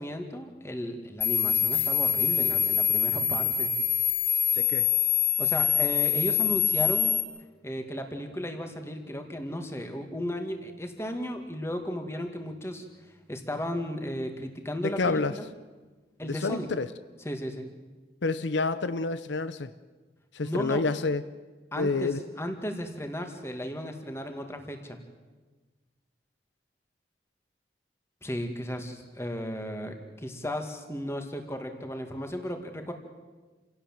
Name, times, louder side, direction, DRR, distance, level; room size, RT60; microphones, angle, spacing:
voice 1, 0.0-3.7 5.4-7.2 7.6-12.9 13.3-15.5 16.2-16.7 17.2-17.7 20.4-20.8 21.7-25.0 28.2-32.9, equal, 15° left, 6 dB, 2.1 m, -35 dB
sound 1, 1.2-7.2, left 8 dB, 30° left, 1.5 m, -25 dB
voice 2, 4.6-4.9 14.8-15.3 16.3-16.9 18.2-19.7 20.3-21.2 21.8-22.2, left 3 dB, 75° left, 13 dB, 0.7 m, -28 dB
28.5 x 17.0 x 7.5 m, 1.3 s
head